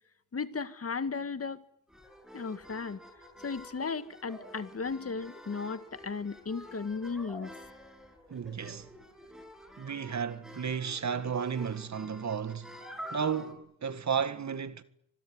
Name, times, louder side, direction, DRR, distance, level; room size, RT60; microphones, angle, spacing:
voice 1, 0.3-1.6 2.3-3.0 3.4-7.5, left 5 dB, 45° left, 1.9 m, -35 dB
sound 1, 1.9-13.5, equal, ahead, 7.6 m, -49 dB
voice 2, 8.3-8.9 9.8-12.7 13.1-14.8, right 7 dB, 55° right, 1.9 m, -33 dB
25.5 x 21.0 x 9.5 m
cardioid pair, 80°, 34 cm